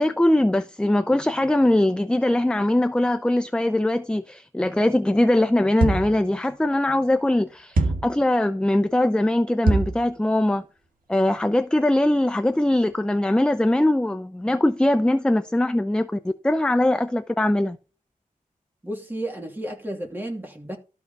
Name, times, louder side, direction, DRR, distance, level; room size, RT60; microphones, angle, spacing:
voice 1, 0.0-10.6 11.1-17.8, left 1 dB, 5° left, 0.6 m, -21 dB
sound 1, 5.8-6.2 7.8-8.2 9.7-10.0, right 2 dB, 80° right, 1.6 m, -22 dB
voice 2, 18.8-20.8, right 1 dB, 15° right, 2.6 m, -32 dB
13.0 x 5.7 x 4.2 m
wide cardioid pair, 110°, 14 cm